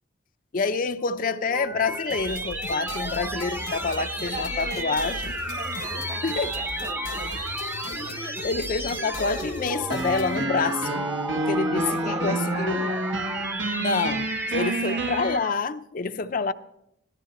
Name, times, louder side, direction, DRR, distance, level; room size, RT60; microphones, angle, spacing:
voice 1, 0.5-5.3 6.2-6.5 8.2-11.1 11.3-12.8 13.8-16.5, left 4 dB, 45° left, 0.5 m, -27 dB
sound 1, 1.0-15.7, right 1 dB, 10° right, 0.6 m, -33 dB
sound 2, 2.1-10.4, left 3 dB, 75° left, 0.8 m, -38 dB
voice 2, 3.7-7.3 11.7-13.0 14.5-15.2, right 1 dB, 40° right, 1.2 m, -39 dB
sound 3, 9.9-15.4, right 1 dB, 80° right, 1.1 m, -29 dB
17.0 x 13.5 x 4.2 m
head